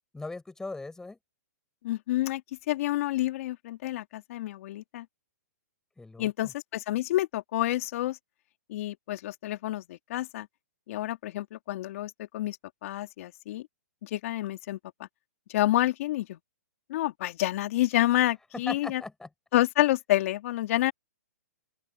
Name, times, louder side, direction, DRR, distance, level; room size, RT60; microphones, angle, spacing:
voice 1, 0.1-1.2 6.0-6.5 18.5-19.3, left 3 dB, 5° left, 5.6 m, -39 dB
voice 2, 1.8-2.4 2.7-5.1 6.2-8.2 8.7-10.5 10.9-12.6 12.8-13.7 14.0-15.1 15.5-16.4 16.9-19.0 19.5-20.9, left 15 dB, 50° left, 2.7 m, -28 dB
open air
hypercardioid pair, 140°, 9 cm